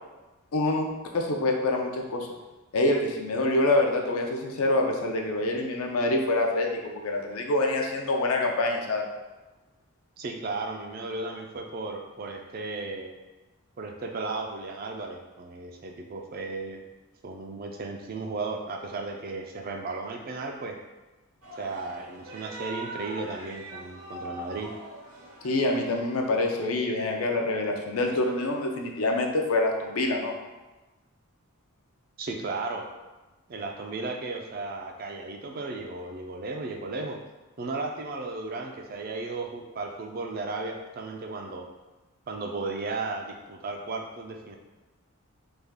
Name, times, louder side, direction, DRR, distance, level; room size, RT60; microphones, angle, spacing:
voice 1, 0.5-2.3 2.7-9.1 25.4-30.3, left 2 dB, 75° left, 2 dB, 0.5 m, -26 dB
voice 2, 10.2-13.2 13.8-16.8 17.2-20.8 21.6-24.7 32.2-32.9 33.5-37.2 37.6-41.7 42.3-44.6, right 3 dB, 40° right, 3 dB, 0.3 m, -35 dB
sound 1, 21.4-26.7, right 1 dB, 75° right, 0.8 m, -42 dB
3.4 x 2.3 x 3.5 m, 1.1 s
head